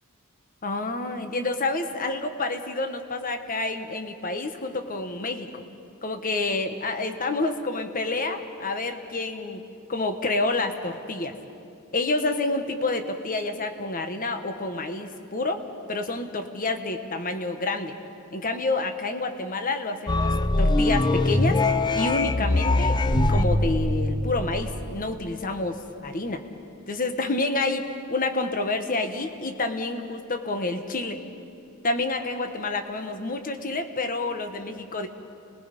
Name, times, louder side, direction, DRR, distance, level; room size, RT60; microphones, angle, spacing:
voice 1, 0.6-5.6 6.0-11.3 11.9-15.6 15.9-17.9 18.3-21.6 21.9-23.0 23.3-26.4 26.9-31.2 31.8-35.1, left 2 dB, 40° left, 7 dB, 1.3 m, -28 dB
sound 1, 20.1-23.4, left 2 dB, 20° left, 0.5 m, -22 dB
sound 2, 23.0-25.3, equal, 75° left, 7.1 m, -25 dB
30.0 x 21.0 x 5.3 m, 2.6 s
head